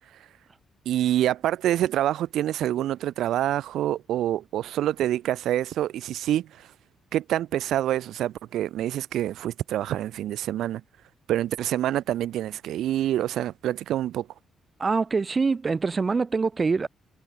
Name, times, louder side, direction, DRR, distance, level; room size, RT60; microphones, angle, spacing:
voice 1, 0.9-6.7 7.1-10.8 11.3-14.3, right 12 dB, 80° right, 1.7 m, -26 dB
voice 2, 14.8-16.9, right 4 dB, 30° right, 3.8 m, -24 dB
cardioid pair, 90°, 0 cm